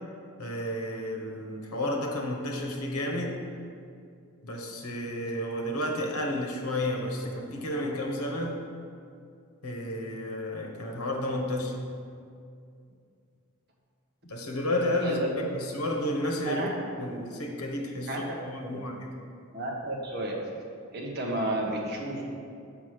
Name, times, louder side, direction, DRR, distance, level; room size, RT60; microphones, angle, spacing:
voice 1, 0.4-3.4 4.4-8.5 9.6-11.8 14.2-15.2 15.6-16.6 17.0-18.2 18.4-19.1, left 1 dB, 85° left, 1 dB, 1.1 m, -31 dB
voice 2, 15.0-15.5 16.4-16.7 18.1-18.2 18.6-18.9 19.5-20.4 20.9-22.2, right 1 dB, 45° right, -2 dB, 1.2 m, -32 dB
6.1 x 5.2 x 6.5 m, 2.4 s
head